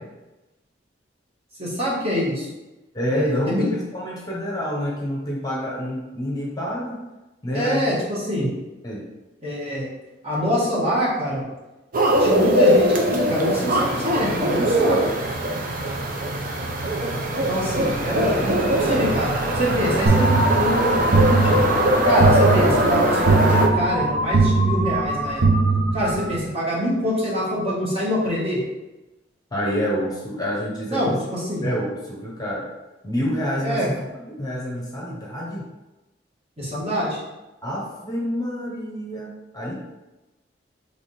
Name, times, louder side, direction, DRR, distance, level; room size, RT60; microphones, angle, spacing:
voice 1, 1.6-2.5 3.1-3.6 7.5-8.5 9.4-9.9 10.2-11.4 12.2-15.0 17.3-21.6 22.0-25.4 25.9-28.6 30.9-31.7 33.6-33.9 36.6-37.2, equal, 35° right, -7 dB, 1.5 m, -25 dB
voice 2, 2.9-7.0 7.4-7.9 8.8-9.1 29.5-31.2 31.6-32.7 33.0-34.0 34.4-35.7 37.6-39.7, equal, 20° left, -3 dB, 0.8 m, -27 dB
sound 1, 11.9-23.7, right 1 dB, 50° right, 0.6 m, -21 dB
sound 2, 20.1-26.4, right 3 dB, 85° right, 0.8 m, -20 dB
3.5 x 3.4 x 4.1 m, 1.0 s
head